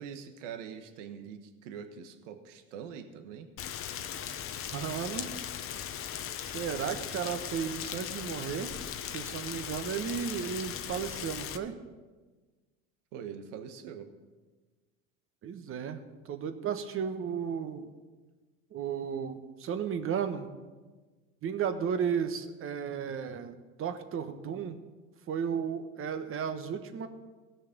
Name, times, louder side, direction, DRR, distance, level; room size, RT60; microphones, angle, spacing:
voice 1, 0.0-3.5 13.1-14.1, right 7 dB, 75° right, 7 dB, 1.3 m, -43 dB
Rain, 3.6-11.6, left 9 dB, 35° left, 0.8 m, -38 dB
voice 2, 4.7-5.3 6.4-8.7 9.1-11.7 15.4-16.0 16.3-17.9 18.7-20.5 21.4-24.8 25.3-27.1, right 7 dB, 35° right, 8 dB, 1.1 m, -34 dB
17.5 x 6.4 x 5.2 m, 1.3 s
supercardioid pair, 110°, 37 cm